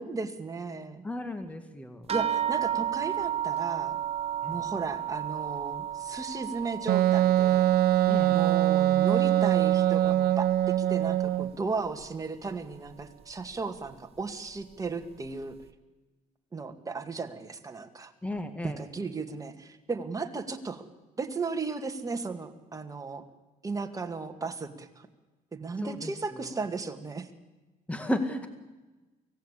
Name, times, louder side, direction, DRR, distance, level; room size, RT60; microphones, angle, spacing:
voice 1, 0.0-1.0 2.1-4.0 4.5-7.7 8.3-15.6 16.5-18.1 18.6-20.9 21.2-23.2 23.6-25.1 25.5-27.3, right 4 dB, 20° right, 5 dB, 2.2 m, -35 dB
voice 2, 1.0-2.0 4.4-4.6 8.1-8.4 18.2-18.8 25.8-26.1 27.9-28.5, left 1 dB, 10° left, 8 dB, 1.8 m, -33 dB
sound 1, 2.1-10.9 11.2-12.1 12.9-13.0 13.4-13.5, right 10 dB, 35° right, 1.2 m, -34 dB
Wind instrument woodwind instrument, 6.9-11.5, right 13 dB, 65° right, 0.9 m, -23 dB
24.5 x 17.5 x 8.4 m, 1.2 s
cardioid pair, 110°, 17 cm